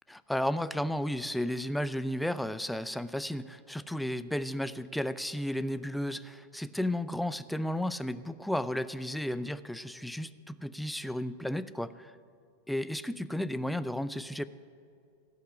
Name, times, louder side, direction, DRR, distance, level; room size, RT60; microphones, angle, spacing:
voice 1, 0.1-12.1 12.7-14.5, left 1 dB, ahead, 14 dB, 0.4 m, -33 dB
16.5 x 5.6 x 9.7 m, 2.4 s
figure-of-eight pair, 90°, 0 cm